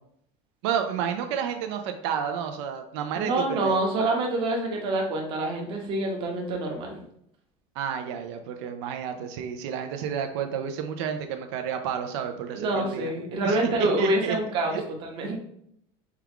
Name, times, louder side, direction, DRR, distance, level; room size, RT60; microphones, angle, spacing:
voice 1, 0.6-3.3 3.6-3.8 7.8-13.1 13.4-14.4 14.7-14.8, right 8 dB, 85° right, 6 dB, 0.4 m, -30 dB
voice 2, 3.1-7.0 12.5-15.4, right 2 dB, 35° right, 1 dB, 0.8 m, -27 dB
4.4 x 2.4 x 3.4 m, 0.71 s
cardioid pair, 175°, 14 cm